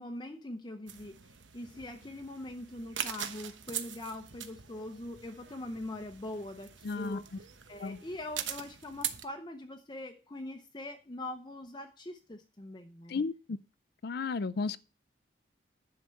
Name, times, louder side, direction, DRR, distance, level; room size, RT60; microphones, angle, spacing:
voice 1, 0.0-13.1, left 1 dB, 25° left, 0.7 m, -42 dB
sound 1, 0.9-9.2, right 9 dB, 85° right, 1.1 m, -42 dB
voice 2, 6.8-7.2 7.8-8.0 13.1-13.6 14.0-14.8, left 4 dB, 55° left, 0.4 m, -33 dB
10.5 x 5.8 x 7.5 m
head